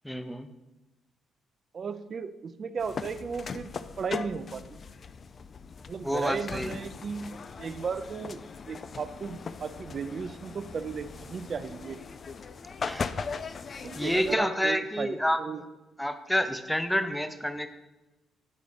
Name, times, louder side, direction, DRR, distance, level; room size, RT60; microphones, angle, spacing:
voice 1, 0.0-0.5 6.0-6.8 12.9-13.1 14.0-15.6 16.0-17.7, equal, 5° left, 9 dB, 0.6 m, -29 dB
voice 2, 1.7-3.7 4.0-4.8 5.9-8.4 8.7-12.0 13.8-15.6, right 5 dB, 45° right, 12 dB, 0.5 m, -35 dB
sound 1, 2.8-14.4, left 5 dB, 45° left, 0.4 m, -39 dB
8.4 x 3.9 x 5.0 m, 1.0 s
cardioid pair, 90°, 0 cm